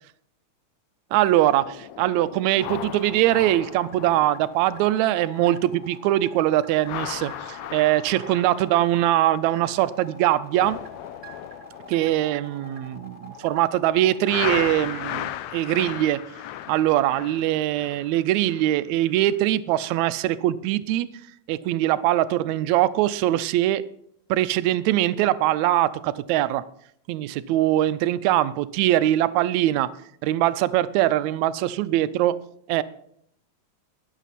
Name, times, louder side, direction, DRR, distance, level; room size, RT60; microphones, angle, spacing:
voice 1, 1.1-10.8 11.9-16.2 16.7-21.1 21.5-23.8 24.3-26.6 27.1-29.9 30.2-32.4 32.7-32.8, right 14 dB, 80° right, 1.9 m, -22 dB
sound 1, 1.6-5.8 6.0-6.3 6.7-10.0 10.3-13.6 14.3-18.8 19.2-19.4, left 12 dB, 80° left, 1.8 m, -37 dB
sound 2, 3.6-15.0, right 1 dB, 15° right, 1.2 m, -45 dB
21.5 x 7.2 x 4.2 m
omnidirectional pair, 3.3 m